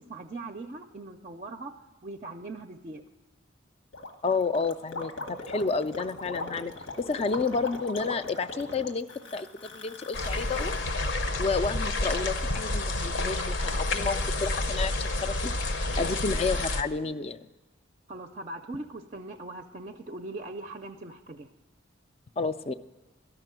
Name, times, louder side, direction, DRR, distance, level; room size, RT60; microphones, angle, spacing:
voice 1, 0.1-1.7 2.0-3.0 18.1-21.5, right 2 dB, 35° right, 5 dB, 0.4 m, -40 dB
Gurgling, 3.9-10.8, left 2 dB, 90° left, 1.4 m, -39 dB
voice 2, 4.2-6.7 7.0-10.7 11.1-15.5 16.0-17.5 22.4-22.7, left 4 dB, 30° left, 13 dB, 0.3 m, -30 dB
sound 1, 10.1-16.8, left 2 dB, 70° left, 0.8 m, -29 dB
13.0 x 5.9 x 8.9 m, 1.2 s
head